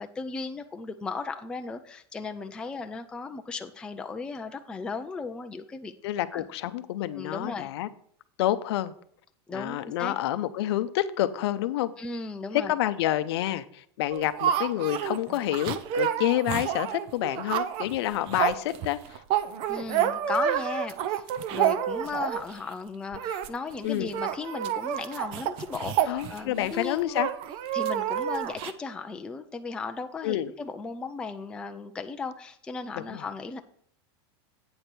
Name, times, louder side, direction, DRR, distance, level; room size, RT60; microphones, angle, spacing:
voice 1, 0.0-5.9 6.3-6.5 7.1-7.7 9.5-10.1 12.0-12.7 19.7-27.3 27.7-33.6, left 4 dB, 5° left, 0.4 m, -36 dB
voice 2, 6.0-7.9 8.4-8.9 9.5-11.9 12.5-19.2 23.8-24.1 26.1-27.3 30.2-30.5 32.9-33.3, left 13 dB, 65° left, 0.6 m, -28 dB
sound 1, 14.1-22.6 23.1-23.5 23.7-23.8 24.1-26.7 27.2-28.7, right 10 dB, 40° right, 0.6 m, -29 dB
8.6 x 4.5 x 6.7 m
supercardioid pair, 155°, 14 cm